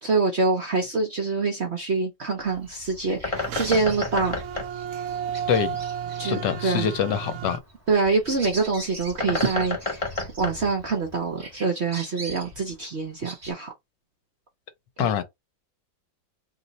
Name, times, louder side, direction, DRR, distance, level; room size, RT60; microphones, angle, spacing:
voice 1, 0.0-4.4 6.2-6.9 7.9-10.0 10.4-13.7 15.0-15.1, right 4 dB, 50° right, 0.8 m, -25 dB
Bird, 2.4-11.6, left 3 dB, 30° left, 0.6 m, -34 dB
Bird vocalization bird call bird song, 2.6-11.0 11.4-13.5, right 2 dB, 20° right, 1.8 m, -42 dB
sound 1, 3.4-7.6, right 9 dB, 90° right, 0.7 m, -33 dB
voice 2, 6.2-7.6 15.0-15.2, left 8 dB, 75° left, 1.3 m, -25 dB
3.1 x 3.0 x 4.0 m
omnidirectional pair, 2.1 m